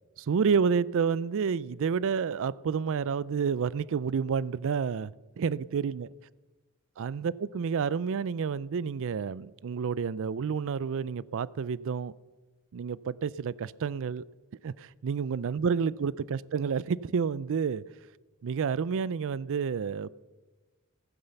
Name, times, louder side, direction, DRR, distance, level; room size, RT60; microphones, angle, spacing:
voice 1, 0.2-6.1 7.0-12.1 12.7-14.2 14.6-17.8 18.4-20.1, right 6 dB, 60° right, 0.4 m, -29 dB
15.0 x 9.8 x 6.9 m
head